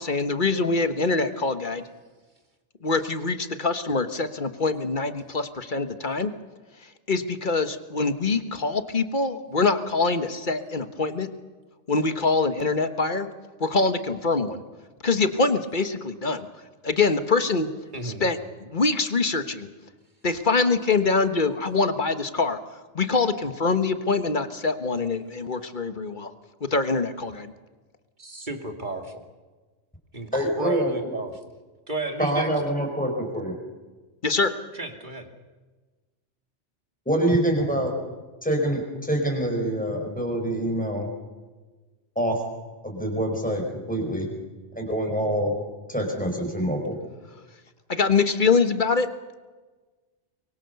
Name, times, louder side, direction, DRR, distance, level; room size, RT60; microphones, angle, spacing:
voice 1, 0.0-1.8 2.8-6.3 7.1-11.3 11.9-13.3 13.6-14.6 15.0-16.5 16.8-17.7 18.0-19.7 20.2-22.6 22.9-26.3 26.7-27.5 34.2-34.5 47.9-49.1, left 4 dB, 40° left, 10 dB, 1.4 m, -24 dB
voice 2, 17.9-18.2 28.2-29.2 30.1-31.3 31.9-32.5 34.7-35.3, right 2 dB, 40° right, 5 dB, 2.6 m, -33 dB
voice 3, 30.3-31.1 32.2-33.5 37.0-37.9 38.4-41.1 42.1-42.4 42.8-44.3 44.7-45.5 45.9-47.0, right 1 dB, 5° left, 2 dB, 5.0 m, -25 dB
24.0 x 23.0 x 7.0 m, 1.3 s
omnidirectional pair, 1.2 m